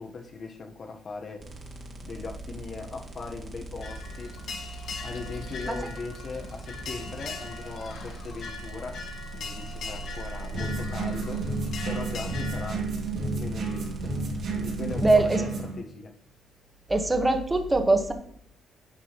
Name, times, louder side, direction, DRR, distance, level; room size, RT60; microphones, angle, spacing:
voice 1, 0.0-1.5 2.0-4.4 5.0-9.0 9.3-11.4 11.8-12.9 13.3-14.1 14.6-16.1, left 4 dB, 50° left, 3 dB, 0.9 m, -39 dB
sound 1, 1.4-15.2, right 3 dB, 45° right, 2.0 m, -40 dB
sound 2, 3.8-12.7, left 4 dB, 75° left, 1.6 m, -40 dB
sound 3, 10.5-15.7, right 3 dB, 75° right, 2.7 m, -31 dB
voice 2, 15.0-15.4 16.9-18.1, right 2 dB, 15° right, 6 dB, 1.2 m, -22 dB
9.8 x 6.1 x 2.9 m, 0.70 s
cardioid pair, 90°, 0 cm